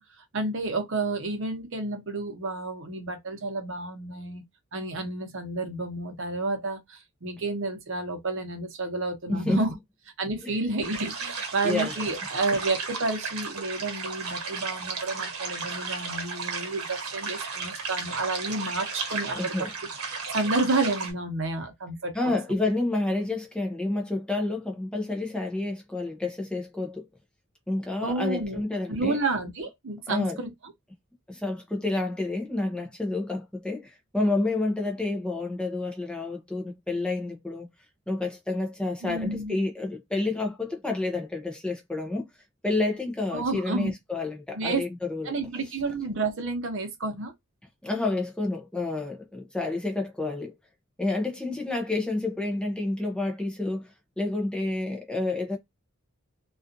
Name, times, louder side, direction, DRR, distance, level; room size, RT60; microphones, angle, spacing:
voice 1, 0.0-4.4 4.7-9.7 10.2-19.7 20.1-22.4 28.0-28.6 28.9-30.7 39.0-39.6 43.3-43.9 44.5-44.8 45.2-47.3, right 2 dB, 60° right, 0.7 m, -30 dB
voice 2, 9.3-9.6 10.4-10.5 11.6-12.0 19.3-19.7 22.1-27.1 27.7-29.2 30.1-30.4 31.3-37.7 38.1-42.3 42.6-45.4 47.8-50.5 51.0-53.9 54.2-55.6, left 2 dB, 5° left, 0.5 m, -29 dB
sound 1, 10.8-21.1, right 4 dB, 85° right, 1.1 m, -34 dB
2.4 x 2.4 x 2.5 m
head